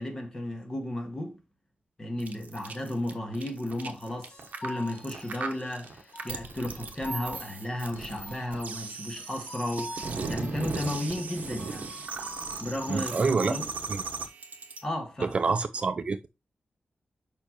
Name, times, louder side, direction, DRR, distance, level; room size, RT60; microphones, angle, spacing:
voice 1, 0.0-1.4 2.0-4.3 4.6-11.9 12.6-13.7 14.8-15.6, left 1 dB, 20° left, 1.5 m, -34 dB
sound 1, 2.2-14.8, right 4 dB, 60° right, 1.1 m, -37 dB
sound 2, 4.3-13.4, left 1 dB, 65° left, 1.7 m, -46 dB
voice 2, 12.9-13.5 15.3-16.3, right 4 dB, 40° right, 0.4 m, -26 dB
6.8 x 5.4 x 2.9 m
wide cardioid pair, 165°, 3 cm